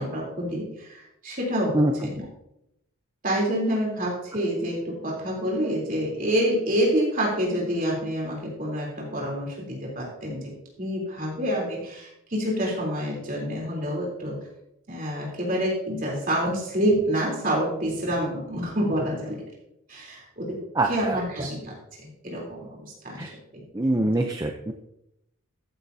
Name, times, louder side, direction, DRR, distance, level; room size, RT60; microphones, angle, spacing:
voice 1, 0.0-2.2 3.2-10.5 10.8-14.4 14.9-19.4 19.9-20.6 20.9-23.6 24.0-24.2, equal, 40° right, -2 dB, 3.4 m, -27 dB
voice 2, 20.8-21.2 23.2-23.3 23.7-24.7, right 1 dB, 15° right, 3 dB, 0.5 m, -24 dB
14.0 x 10.5 x 2.7 m, 0.83 s
head